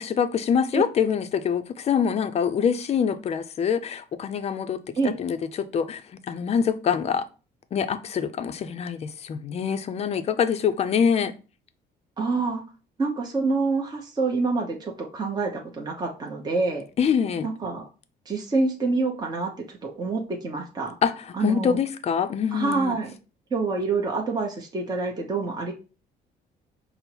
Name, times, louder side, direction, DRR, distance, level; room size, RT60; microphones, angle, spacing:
voice 1, 0.0-6.0 6.3-7.3 7.7-11.3 17.0-17.5 21.0-23.0, left 7 dB, 40° left, 0.5 m, -25 dB
voice 2, 12.2-12.6 13.0-16.8 17.4-17.9 18.3-20.9 21.3-21.8 22.5-23.1 23.5-25.7, right 3 dB, 25° right, 0.8 m, -27 dB
5.2 x 2.0 x 4.4 m
cardioid pair, 110°, 17 cm